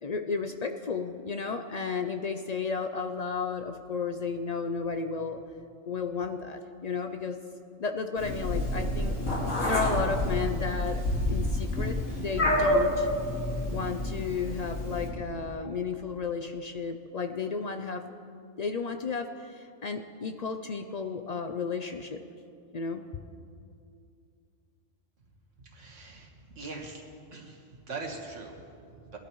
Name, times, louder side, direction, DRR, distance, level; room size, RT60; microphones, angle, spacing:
voice 1, 0.0-5.4 5.9-7.4 7.8-9.2 9.6-11.0 11.3-13.1 13.7-18.1 18.6-22.2 22.7-23.0, left 5 dB, 65° left, 6 dB, 0.4 m, -33 dB
Meow, 8.2-15.1, left 1 dB, 80° left, 2.5 m, -28 dB
voice 2, 25.6-27.0 27.3-29.2, right 3 dB, 70° right, 0 dB, 1.9 m, -42 dB
20.5 x 12.0 x 3.1 m, 2.5 s
omnidirectional pair, 1.3 m